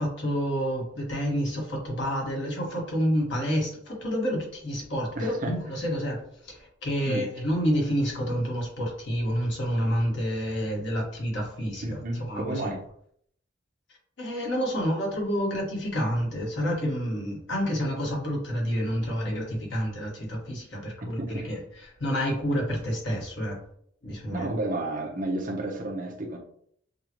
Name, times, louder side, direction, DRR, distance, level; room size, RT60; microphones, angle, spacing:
voice 1, 0.0-6.2 6.5-12.7 14.2-21.6 22.0-23.6 24.0-24.5, equal, 65° left, -2 dB, 1.5 m, -29 dB
voice 2, 5.2-5.5 7.1-7.3 11.8-12.8 21.2-21.5 24.3-26.4, right 2 dB, 45° right, 0 dB, 0.9 m, -31 dB
6.6 x 2.4 x 3.0 m, 0.66 s
head